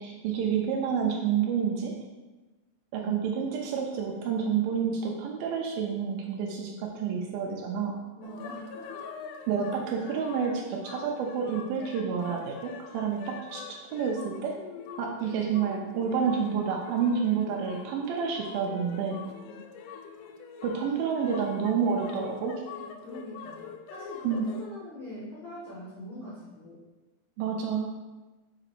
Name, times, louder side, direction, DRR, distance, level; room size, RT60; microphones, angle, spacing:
voice 1, 0.0-1.9 2.9-7.9 9.5-13.6 13.9-14.5 15.0-19.2 20.6-22.6 24.2-24.5 27.4-27.9, right 6 dB, 80° right, 0 dB, 2.4 m, -29 dB
sound 1, 8.2-24.7, left 6 dB, 85° left, 1.8 m, -45 dB
voice 2, 8.2-9.1 13.1-13.3 19.5-19.6 23.0-26.8, left 1 dB, 70° left, -9 dB, 1.1 m, -43 dB
5.1 x 4.9 x 4.5 m, 1.2 s
omnidirectional pair, 4.2 m